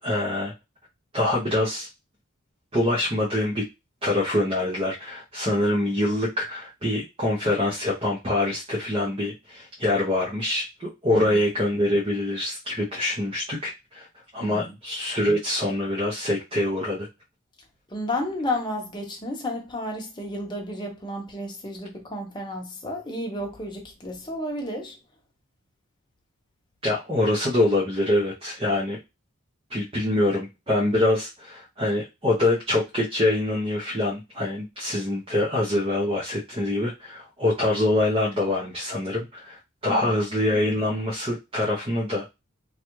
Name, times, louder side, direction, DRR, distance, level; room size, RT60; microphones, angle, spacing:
voice 1, 0.0-0.5 1.1-1.9 2.7-3.6 4.0-14.1 14.3-17.1 26.8-29.0 29.7-42.3, left 1 dB, 25° right, 0.7 m, -25 dB
voice 2, 14.4-14.7 17.9-25.0 39.8-40.2, left 1 dB, 20° left, 0.8 m, -32 dB
3.3 x 2.4 x 2.9 m
head